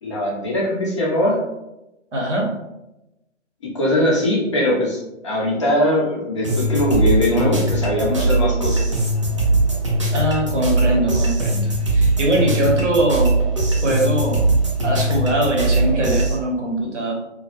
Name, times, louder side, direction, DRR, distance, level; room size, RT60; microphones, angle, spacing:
voice 1, 0.0-1.4 3.6-8.8, left 1 dB, 25° left, -4 dB, 0.5 m, -21 dB
voice 2, 2.1-2.5 10.1-13.4 13.8-14.5 14.8-17.1, right 1 dB, 75° right, 0 dB, 0.9 m, -21 dB
sound 1, 6.4-16.4, right 2 dB, 30° right, 0.4 m, -20 dB
2.3 x 2.0 x 2.9 m, 0.94 s
figure-of-eight pair, 135°, 36 cm